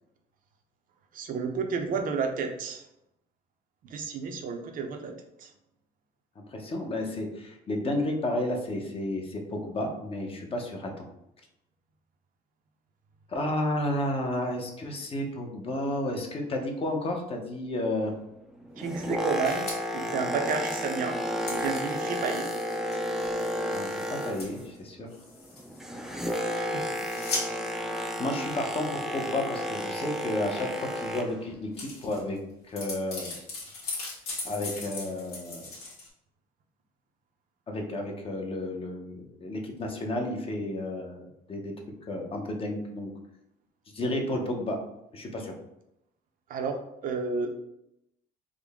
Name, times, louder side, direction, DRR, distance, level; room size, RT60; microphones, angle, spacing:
voice 1, 1.1-2.8 3.8-5.5 18.8-19.7 19.9-21.2 21.5-22.5 26.6-27.0 46.5-47.5, right 5 dB, 55° right, 4 dB, 0.5 m, -31 dB
voice 2, 6.5-11.1 13.3-18.1 23.7-25.1 27.1-27.5 28.2-32.4 32.7-33.4 34.4-35.7 37.7-41.7 42.1-43.1 43.9-44.8 45.1-45.5, left 1 dB, 35° left, 2 dB, 0.7 m, -32 dB
Boat Water vehicle, 18.6-24.7 25.0-31.5 32.1-32.2, equal, 5° right, 0.4 m, -32 dB
sound 1, 19.5-19.8 20.4-20.5 20.7-20.8 21.4-24.8 25.1-25.8 26.1-26.4 26.7-27.5 28.3-28.5 31.3-31.4 31.6-32.4 32.7-36.1, left 3 dB, 70° left, 1.5 m, -39 dB
3.7 x 2.1 x 3.5 m, 0.81 s
cardioid pair, 110°, 17 cm